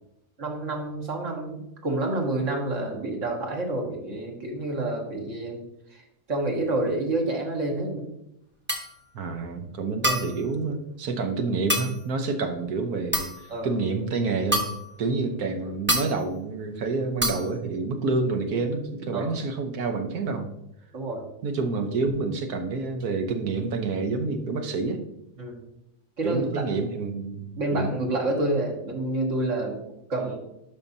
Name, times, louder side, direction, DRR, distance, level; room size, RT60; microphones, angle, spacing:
voice 1, 0.4-5.6 5.9-6.0 6.3-8.1 13.5-13.8 19.1-19.3 20.9-21.2 25.4-25.6 26.2-26.6 27.6-29.8 30.1-30.4, right 2 dB, 55° right, 0 dB, 1.8 m, -28 dB
sound 1, 8.7-9.0 10.0-10.4 11.7-12.0 13.1-13.5 14.5-14.9 15.9-16.2 17.2-17.5, equal, 10° right, 0.7 m, -27 dB
voice 2, 9.1-14.7 15.0-20.5 21.4-25.0 26.2-27.9, right 3 dB, 85° right, 6 dB, 1.5 m, -28 dB
11.5 x 5.5 x 2.7 m, 0.82 s
omnidirectional pair, 1.6 m